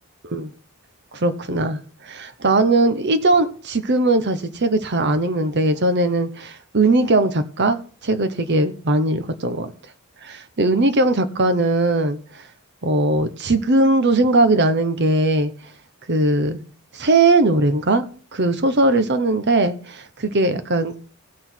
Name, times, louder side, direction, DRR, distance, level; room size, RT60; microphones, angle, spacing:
voice 1, 1.1-9.7 10.2-12.4 12.8-15.5 16.1-16.6 16.9-18.0 18.3-21.1, right 2 dB, 50° right, 0.9 m, -19 dB
16.5 x 6.2 x 4.5 m
head